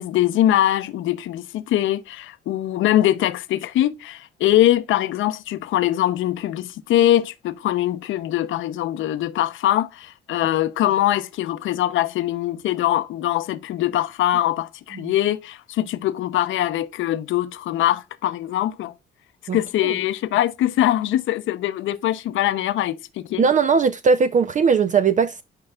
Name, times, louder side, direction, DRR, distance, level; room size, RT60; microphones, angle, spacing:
voice 1, 0.0-18.9 19.5-23.4, left 13 dB, 80° left, 0.6 m, -22 dB
voice 2, 23.4-25.4, right 5 dB, 40° right, 0.5 m, -19 dB
8.8 x 5.3 x 2.3 m
cardioid pair, 90°, 20 cm